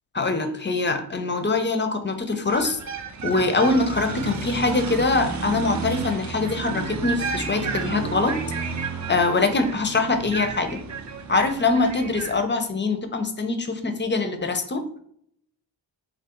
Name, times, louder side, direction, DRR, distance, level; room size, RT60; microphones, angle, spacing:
voice 1, 0.1-2.8 3.2-8.4 9.1-10.8 11.3-15.0, left 3 dB, 25° left, 7 dB, 0.4 m, -23 dB
sound 1, 2.5-12.4, right 4 dB, 40° right, 0.5 m, -31 dB
2.6 x 2.4 x 3.5 m, 0.67 s
cardioid pair, 50°, 46 cm